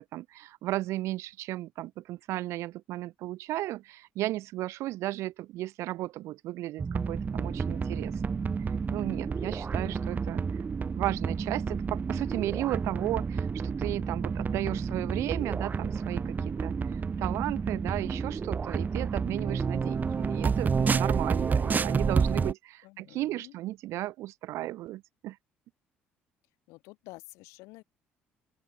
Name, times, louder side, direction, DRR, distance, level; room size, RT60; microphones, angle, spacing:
voice 1, 0.0-8.5 8.9-10.4 11.0-25.4, right 16 dB, 70° right, 2.2 m, -35 dB
sound 1, 6.8-22.5, right 5 dB, 35° right, 1.1 m, -30 dB
voice 2, 22.8-23.5 26.7-27.8, left 23 dB, 75° left, 2.8 m, -49 dB
open air
hypercardioid pair, 55°, 5 cm